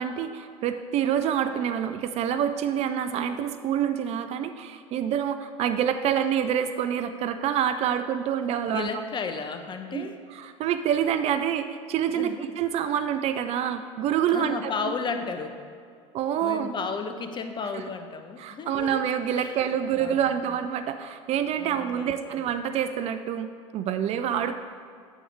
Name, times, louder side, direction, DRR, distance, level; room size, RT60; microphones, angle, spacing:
voice 1, 0.0-8.9 9.9-14.7 16.1-16.7 17.7-17.8 18.4-24.6, right 9 dB, 40° right, 10 dB, 0.4 m, -27 dB
voice 2, 8.7-10.2 12.1-12.5 14.3-15.6 16.4-19.0 19.4-20.4 21.6-22.4, left 5 dB, 30° left, 7 dB, 0.7 m, -34 dB
8.8 x 7.8 x 3.3 m, 2.1 s
figure-of-eight pair, 70°, 17 cm